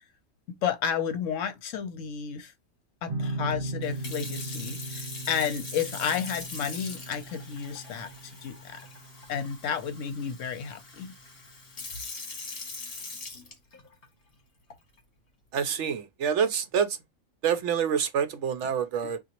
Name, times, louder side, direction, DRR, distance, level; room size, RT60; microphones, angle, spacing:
voice 1, 0.6-2.5 3.0-8.1 8.4-8.8 9.3-11.1, left 7 dB, 70° left, 1.0 m, -32 dB
sound 1, 3.1-10.3, right 2 dB, 40° right, 1.3 m, -38 dB
Sink (filling or washing) / Fill (with liquid), 3.8-14.0 14.7-15.0, left 3 dB, 50° left, 1.2 m, -42 dB
voice 2, 15.5-17.0 17.4-19.2, right 7 dB, 65° right, 0.8 m, -27 dB
3.9 x 2.5 x 2.9 m
omnidirectional pair, 1.4 m